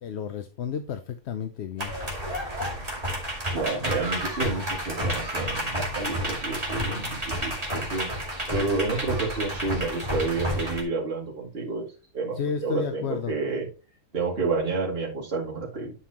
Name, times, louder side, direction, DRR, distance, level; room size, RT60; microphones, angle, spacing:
voice 1, 0.0-1.9 5.9-6.0 6.7-7.2 12.4-13.3, left 6 dB, 60° left, 0.9 m, -32 dB
sound 1, 1.8-10.8, equal, 25° right, 2.6 m, -30 dB
voice 2, 3.5-8.1 8.5-11.8 12.1-13.7 14.1-15.9, right 3 dB, 45° right, 2.7 m, -30 dB
11.0 x 5.6 x 2.9 m
omnidirectional pair, 1.5 m